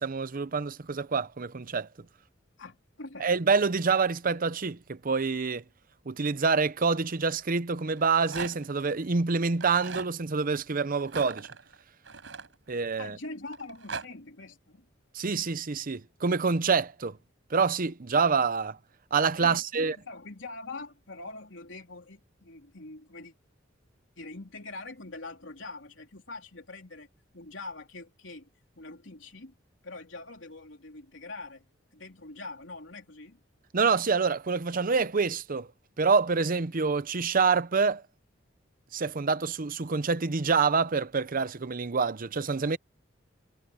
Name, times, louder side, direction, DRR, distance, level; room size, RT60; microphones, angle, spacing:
voice 1, 0.0-1.9 3.2-5.6 6.1-11.5 12.7-13.2 15.1-17.2 17.5-18.8 19.1-20.0 33.7-35.7 36.0-38.0 38.9-42.8, right 5 dB, 45° right, 0.7 m, -26 dB
voice 2, 2.6-3.3 13.0-14.9 19.4-23.3 24.2-27.1 27.3-28.5 28.8-29.5 29.8-31.7 31.9-33.4, left 2 dB, 75° left, 3.6 m, -43 dB
Rattle, 7.9-8.8 9.5-10.1 11.0-13.0 13.5-14.1, right 5 dB, 80° right, 4.9 m, -40 dB
head